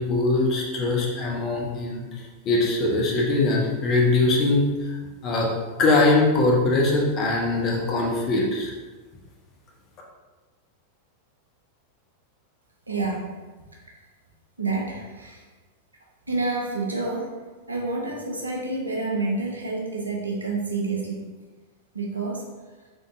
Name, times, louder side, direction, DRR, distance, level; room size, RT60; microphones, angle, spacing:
voice 1, 0.0-2.1 2.4-5.0 5.2-5.5 5.8-8.7, left 2 dB, 35° left, -1 dB, 0.8 m, -22 dB
voice 2, 12.9-13.3 14.6-15.4 16.3-17.3 17.7-21.3 21.9-22.4, right 3 dB, 80° right, -1 dB, 0.7 m, -28 dB
3.8 x 3.4 x 2.6 m, 1.3 s
figure-of-eight pair, 90°, 0 cm